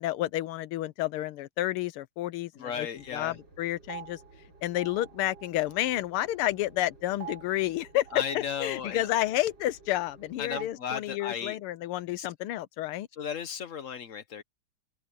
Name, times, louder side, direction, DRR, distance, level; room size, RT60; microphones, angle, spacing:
voice 1, 0.0-2.9 3.1-4.2 4.6-8.1 8.3-13.1, left 14 dB, 85° left, 1.6 m, -30 dB
voice 2, 2.5-3.4 8.1-9.1 10.4-11.6 12.2-12.3 13.2-14.4, left 7 dB, 50° left, 1.0 m, -35 dB
sound 1, 3.0-10.6, right 8 dB, 55° right, 5.4 m, -48 dB
open air
omnidirectional pair, 2.4 m